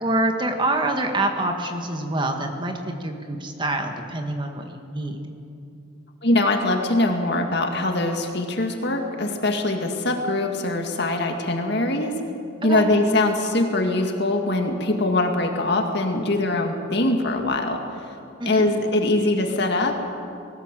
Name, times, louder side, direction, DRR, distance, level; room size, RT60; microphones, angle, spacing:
voice 1, 0.0-2.7 3.0-5.2 12.6-12.8 18.4-18.7, right 2 dB, 25° right, 4 dB, 1.5 m, -26 dB
voice 2, 6.2-12.1 12.6-17.8 18.5-20.2, left 2 dB, 55° left, 4 dB, 2.1 m, -22 dB
21.0 x 17.5 x 7.6 m, 2.6 s
head